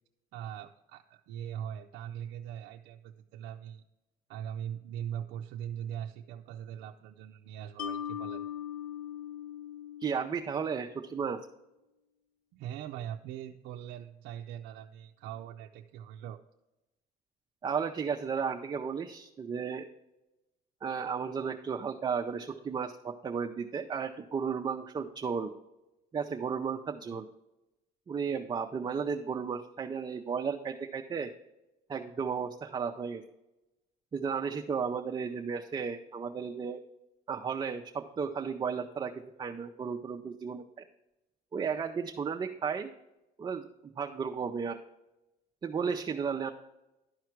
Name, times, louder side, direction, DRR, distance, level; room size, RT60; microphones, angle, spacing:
voice 1, 0.3-3.8 4.3-8.4 12.5-16.4 27.1-27.2, right 10 dB, 90° right, 3 dB, 0.4 m, -41 dB
Mallet percussion, 7.8-11.1, left 9 dB, 60° left, 0.8 m, -40 dB
voice 2, 10.0-11.5 17.6-19.9 20.8-25.5 26.1-27.3 28.1-31.3 31.9-33.2 34.1-36.8 37.3-40.8 41.5-42.9 43.4-43.7 44.0-44.8 45.6-46.5, right 6 dB, 25° right, 3 dB, 0.5 m, -34 dB
11.5 x 4.7 x 4.5 m, 0.97 s
cardioid pair, 110°, 17 cm